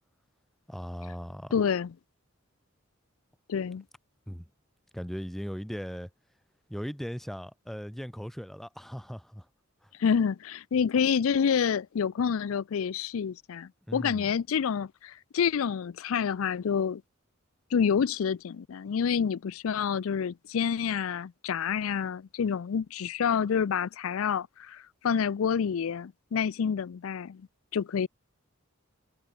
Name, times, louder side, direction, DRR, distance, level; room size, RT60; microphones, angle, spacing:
voice 1, 0.7-1.5 4.3-4.5 4.9-6.1 6.7-9.5 9.8-9.9 13.9-14.3, equal, ahead, 0.4 m, -38 dB
voice 2, 1.5-1.9 3.5-3.8 10.0-17.0 17.7-27.5 27.7-28.1, left 7 dB, 70° left, 0.4 m, -28 dB
head